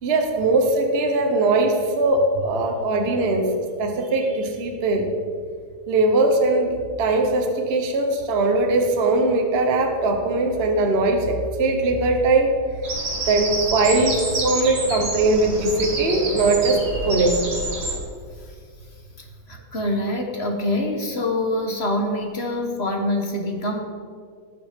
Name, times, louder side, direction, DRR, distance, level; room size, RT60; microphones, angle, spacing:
voice 1, 0.0-3.5 3.8-5.1 5.9-12.5 13.3-16.8 17.0-17.4, right 2 dB, 35° right, 4 dB, 1.1 m, -20 dB
Bird vocalization bird call bird song, 12.8-18.0, right 2 dB, 75° right, 3.3 m, -28 dB
voice 2, 19.2-23.8, left 1 dB, 35° left, 2 dB, 1.5 m, -25 dB
18.5 x 6.9 x 5.2 m, 2.1 s
omnidirectional pair, 2.2 m